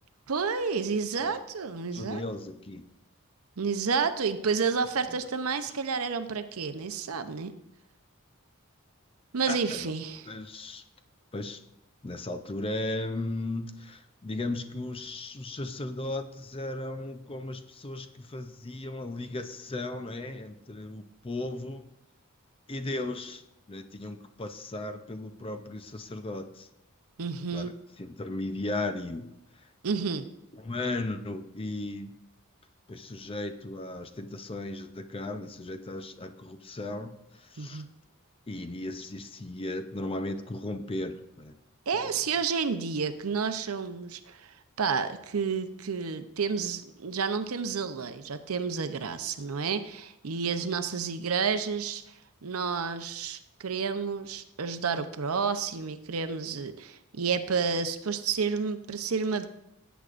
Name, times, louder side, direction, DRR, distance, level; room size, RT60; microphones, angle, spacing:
voice 1, 0.3-2.2 3.6-7.5 9.3-10.3 27.2-27.7 29.8-30.2 37.6-37.9 41.9-52.0 52.4-59.5, right 5 dB, 75° right, 10 dB, 0.7 m, -30 dB
voice 2, 1.9-2.9 5.1-5.3 9.5-9.9 10.3-10.8 11.3-11.6 12.0-21.9 22.7-23.4 23.7-26.7 27.5-27.7 28.0-29.7 30.6-32.2 32.9-37.8 38.5-41.6 41.9-42.1, left 2 dB, 25° left, 8 dB, 0.6 m, -36 dB
17.0 x 8.1 x 2.5 m, 0.83 s
head